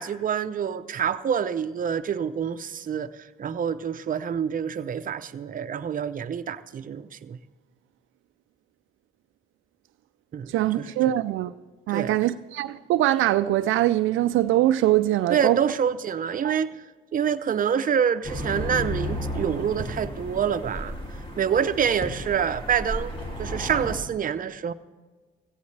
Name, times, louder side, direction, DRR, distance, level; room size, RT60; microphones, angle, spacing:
voice 1, 0.0-7.4 10.3-10.9 11.9-12.2 15.3-16.8 17.1-20.9 21.4-24.7, right 8 dB, 45° right, 0.7 m, -27 dB
voice 2, 10.5-11.5 11.9-15.6 16.4-16.5, right 14 dB, 80° right, 0.4 m, -22 dB
sound 1, 18.2-24.0, equal, 25° left, 3.2 m, -33 dB
16.5 x 15.5 x 3.3 m
cardioid pair, 90°, 20 cm